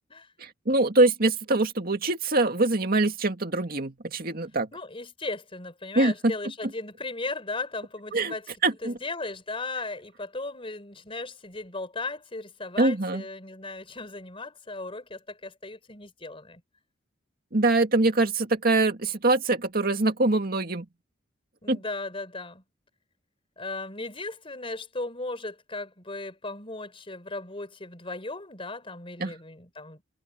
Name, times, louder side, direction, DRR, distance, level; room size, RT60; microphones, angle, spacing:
voice 1, 0.4-4.7 6.0-6.3 8.1-8.3 8.6-8.9 12.8-13.2 17.5-20.9 21.7-21.8 29.2-29.3, right 2 dB, 50° right, 2.2 m, -24 dB
voice 2, 4.7-8.5 8.8-16.6 21.6-22.6 23.6-30.0, left 2 dB, 30° left, 4.5 m, -36 dB
head